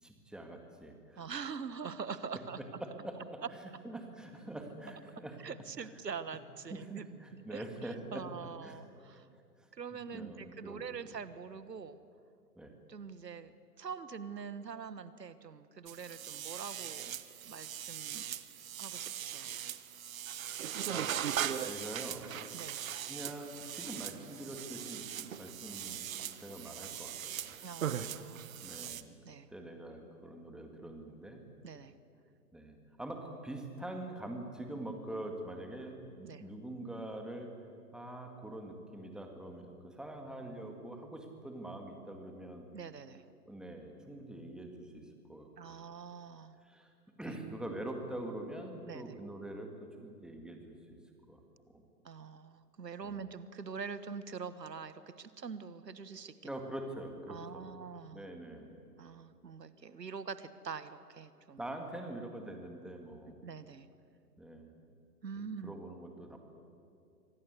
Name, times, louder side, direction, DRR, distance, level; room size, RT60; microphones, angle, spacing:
voice 1, 0.0-1.2 2.5-5.4 6.7-8.3 8.6-8.8 9.1-9.2 9.6-9.7 10.1-10.9 12.6-12.7 20.5-21.1 21.6-22.3 23.1-26.0 26.4-27.5 28.6-29.1 29.5-31.4 32.5-37.5 37.9-42.7 43.5-45.5 46.6-46.9 47.2-51.0 51.3-51.4 51.7-51.8 53.0-53.2 56.4-57.7 58.1-58.7 61.6-63.4 64.4-64.7 65.6-66.4, right 1 dB, ahead, 3 dB, 2.0 m, -44 dB
voice 2, 1.2-2.6 5.4-7.0 7.5-9.3 9.7-12.0 12.9-13.5 13.8-17.1 17.4-18.3 18.8-19.5 22.5-22.8 27.6-28.5 29.2-29.5 31.6-31.9 36.2-36.4 42.7-43.3 45.6-46.6 47.2-47.4 48.8-49.1 52.0-56.6 57.3-58.3 59.0-61.6 63.4-63.9 65.2-65.7, right 6 dB, 85° right, 14 dB, 1.4 m, -44 dB
sound 1, 15.9-29.0, right 10 dB, 55° right, 1.2 m, -40 dB
25.0 x 18.0 x 8.3 m, 2.5 s
hypercardioid pair, 135°, 48 cm